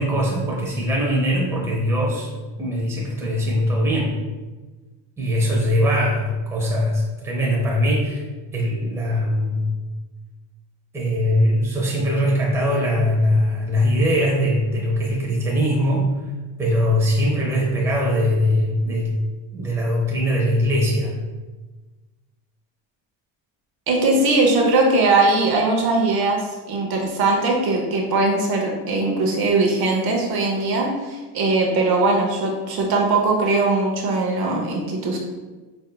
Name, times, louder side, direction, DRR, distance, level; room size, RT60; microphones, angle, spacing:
voice 1, 0.0-2.3 2.6-4.2 5.2-8.2 8.5-9.7 10.9-16.1 16.6-19.2 19.5-21.1, equal, 5° right, -3 dB, 0.7 m, -21 dB
voice 2, 23.9-35.2, right 3 dB, 50° right, 0 dB, 0.8 m, -20 dB
5.3 x 2.7 x 2.2 m, 1.2 s
supercardioid pair, 110°, 50 cm